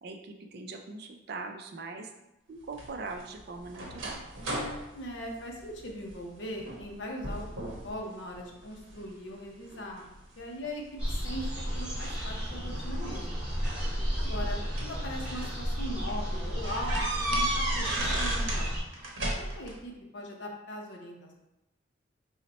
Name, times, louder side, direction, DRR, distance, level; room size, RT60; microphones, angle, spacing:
voice 1, 0.0-2.1 2.5-4.3, right 3 dB, 50° right, 4 dB, 0.4 m, -41 dB
sound 1, 2.7-6.2 6.6-6.9 7.2-7.9 8.3-9.1 9.7-11.1 12.3-12.4 13.6-15.0 15.5-15.7 16.0-16.1 16.6-18.6 18.9-19.8, right 1 dB, 75° right, 0.8 m, -34 dB
voice 2, 4.9-10.0 10.4-13.4 14.2-18.7 19.4-21.3, equal, 60° left, 1 dB, 0.7 m, -40 dB
sound 2, 11.0-18.8, equal, 5° right, 0.8 m, -32 dB
3.9 x 2.1 x 4.0 m, 0.94 s
head